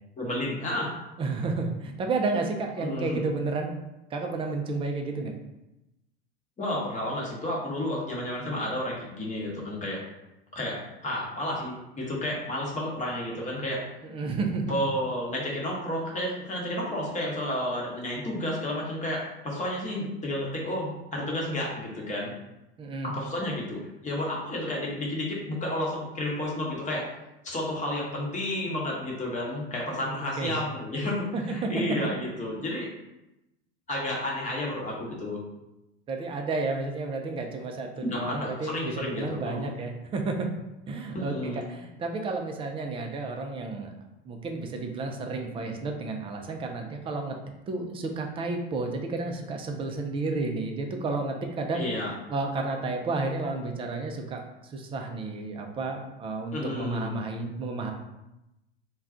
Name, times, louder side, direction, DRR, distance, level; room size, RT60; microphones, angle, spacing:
voice 1, 0.2-0.9 2.8-3.2 6.6-10.0 10.5-13.8 14.7-22.3 23.0-27.1 27.4-32.9 33.9-35.4 38.0-39.7 41.1-41.6 51.7-52.1 56.5-57.1, left 1 dB, 25° left, -3 dB, 1.0 m, -31 dB
voice 2, 1.2-3.7 4.1-5.3 14.0-14.8 22.8-23.1 30.4-30.5 31.3-31.7 36.1-40.5 40.9-43.9 44.2-47.4 47.7-51.9 52.3-57.9, right 3 dB, 20° right, 3 dB, 0.4 m, -31 dB
2.3 x 2.3 x 3.7 m, 0.93 s
hypercardioid pair, 95°, 32 cm